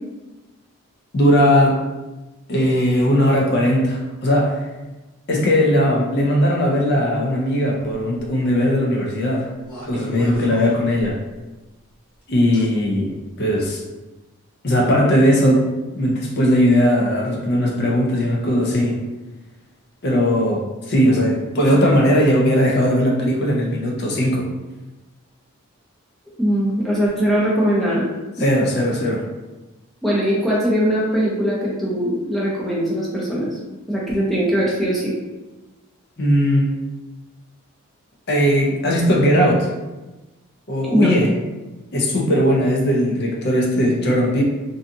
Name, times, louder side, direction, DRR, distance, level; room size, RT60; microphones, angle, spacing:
voice 1, 1.1-1.8 2.5-4.6 5.3-9.5 9.9-11.2 12.3-13.8 14.6-15.7 15.9-19.0 20.0-24.5 28.4-29.2 36.2-36.7 38.3-39.7 40.7-41.3 41.9-44.4, equal, 50° left, -1 dB, 0.5 m, -18 dB
sound 1, 8.2-8.3 9.6-11.4 12.5-12.6 13.5-13.7, equal, 80° left, 1.1 m, -35 dB
voice 2, 26.4-28.1 30.0-33.5 33.9-35.1 40.9-41.1, equal, ahead, -7 dB, 0.5 m, -20 dB
2.6 x 2.3 x 2.6 m, 1.1 s
head